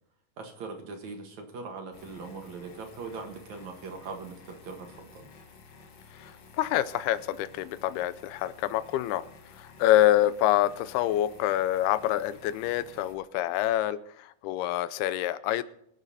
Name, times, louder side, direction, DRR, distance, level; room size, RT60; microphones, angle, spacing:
voice 1, 0.4-5.3, right 4 dB, 55° right, 3 dB, 2.5 m, -41 dB
sound 1, 1.9-13.1, left 4 dB, 55° left, 2.5 m, -53 dB
voice 2, 6.6-9.2 9.6-15.6, left 13 dB, 85° left, 15 dB, 2.7 m, -26 dB
24.5 x 8.3 x 4.2 m, 0.73 s
omnidirectional pair, 4.4 m